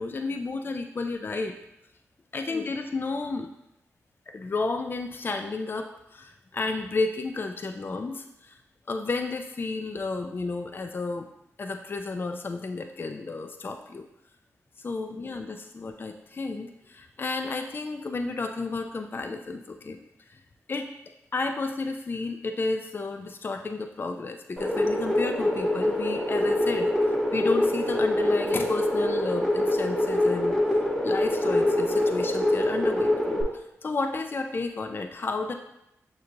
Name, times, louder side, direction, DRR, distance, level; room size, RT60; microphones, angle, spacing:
voice 1, 0.0-1.5 2.3-3.5 4.3-8.6 8.9-11.3 11.6-14.0 14.8-20.0 20.3-20.4 20.7-20.9 21.3-26.9 27.3-30.6 31.0-35.5, left 3 dB, 40° left, 5 dB, 0.3 m, -32 dB
sound 1, 24.6-33.4, left 1 dB, 5° left, 0.9 m, -24 dB
6.5 x 2.7 x 2.5 m, 0.84 s
cardioid pair, 60°, 6 cm